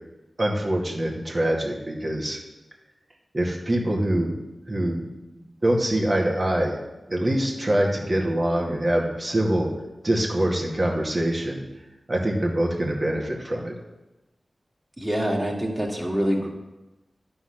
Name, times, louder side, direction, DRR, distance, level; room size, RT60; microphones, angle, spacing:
voice 1, 0.4-2.4 3.3-4.4 4.7-5.0 5.3-6.8 7.1-9.7 10.0-11.6 12.1-13.7, right 1 dB, 45° right, -1 dB, 2.2 m, -24 dB
voice 2, 15.0-16.5, equal, 25° right, -1 dB, 2.4 m, -25 dB
11.5 x 4.5 x 5.9 m, 1.1 s
cardioid pair, 40°, 0 cm